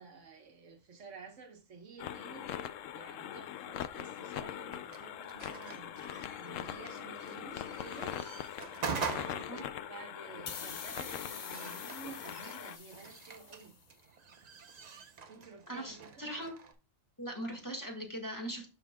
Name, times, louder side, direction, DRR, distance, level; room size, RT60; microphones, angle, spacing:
voice 1, 0.0-13.7 15.3-16.2, right 5 dB, 70° right, 1.4 m, -52 dB
sound 1, 2.0-12.8, left 10 dB, 80° left, 0.9 m, -42 dB
sound 2, 4.7-16.7, right 5 dB, 40° right, 0.7 m, -45 dB
sound 3, 10.5-13.8, left 6 dB, 45° left, 0.7 m, -46 dB
voice 2, 15.7-16.5 17.2-18.7, equal, 15° left, 1.6 m, -40 dB
12.5 x 4.3 x 2.2 m
omnidirectional pair, 1.3 m